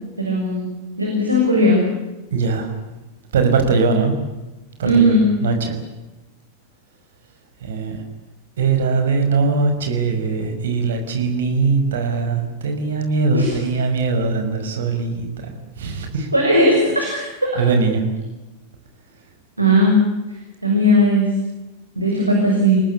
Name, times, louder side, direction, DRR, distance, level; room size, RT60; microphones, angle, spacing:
voice 1, 0.2-0.6 1.0-1.8 4.8-5.2 13.3-13.5 16.3-17.5 19.6-20.0 20.6-21.3 21.9-22.8, equal, 85° right, 0 dB, 6.6 m, -17 dB
voice 2, 2.3-2.7 3.3-4.1 4.8-5.2 5.4-5.8 7.6-8.0 8.6-16.3 17.6-18.0, right 4 dB, 60° right, 6 dB, 5.8 m, -21 dB
29.5 x 19.0 x 8.6 m, 1.1 s
figure-of-eight pair, 90°, 0 cm